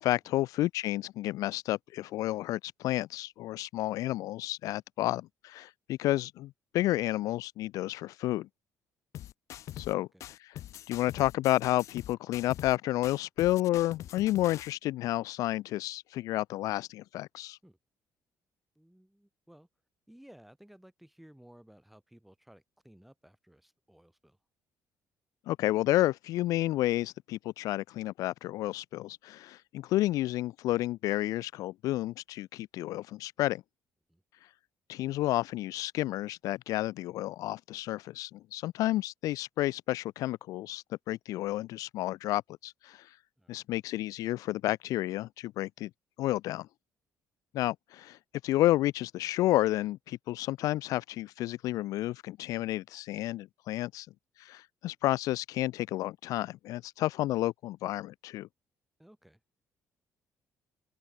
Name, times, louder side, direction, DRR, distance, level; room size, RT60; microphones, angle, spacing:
voice 1, 0.0-8.5 9.8-10.1 10.9-17.6 25.5-33.6 34.9-43.1 43.5-45.9 46.2-46.7 47.5-48.2 48.4-54.1 54.4-58.5, left 16 dB, 70° left, 0.4 m, -31 dB
sound 1, 9.1-9.9 10.2-12.8 13.0-14.7, left 12 dB, 55° left, 1.4 m, -44 dB
voice 2, 9.9-10.3 17.6-17.8 18.7-19.7 20.1-24.4 34.1-34.2 43.4-43.7 59.0-59.4, right 1 dB, ahead, 6.7 m, -57 dB
open air
cardioid pair, 180°, 6 cm